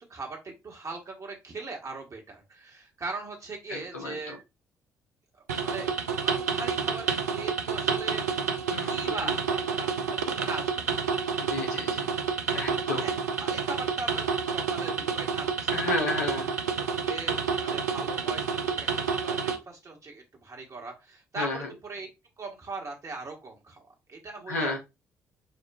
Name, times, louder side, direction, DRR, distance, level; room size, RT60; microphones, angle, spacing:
voice 1, 0.1-4.4 5.6-5.9 6.2-8.3 8.8-10.9 12.7-15.9 17.1-22.1 22.4-23.8 24.1-24.7, right 3 dB, 40° right, 1.3 m, -40 dB
voice 2, 3.7-4.2 8.7-9.3 11.4-12.1 12.5-13.0 15.7-16.5 21.4-21.7 24.5-24.8, left 3 dB, 80° left, 0.7 m, -32 dB
sound 1, 5.5-19.6, right 6 dB, 80° right, 0.4 m, -29 dB
5.1 x 2.4 x 2.3 m
figure-of-eight pair, 45°, 9 cm